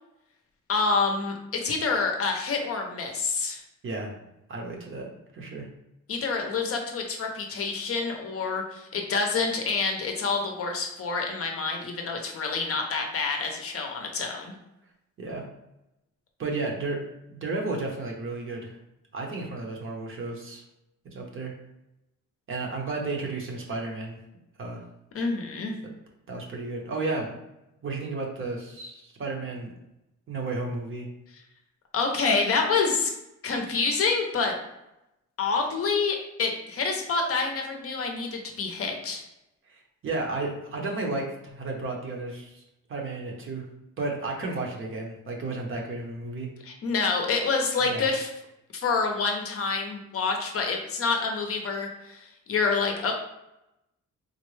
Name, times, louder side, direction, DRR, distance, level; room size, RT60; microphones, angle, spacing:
voice 1, 0.7-3.6 6.1-14.5 25.1-25.7 31.9-33.1 33.4-34.5 35.4-39.2 46.7-48.3 48.7-53.1, left 4 dB, 45° left, 2 dB, 0.6 m, -27 dB
voice 2, 3.8-4.1 4.5-5.1 5.3-5.7 15.2-15.4 16.4-17.0 17.3-18.8 19.1-20.6 21.1-21.5 22.5-24.2 24.6-24.8 25.8-25.9 26.3-27.4 27.8-29.7 30.3-31.1 39.7-42.6 42.9-43.7 44.0-46.5 47.8-48.1, right 3 dB, 40° right, 0 dB, 0.7 m, -33 dB
3.8 x 2.1 x 3.1 m, 0.88 s
cardioid pair, 145°, 31 cm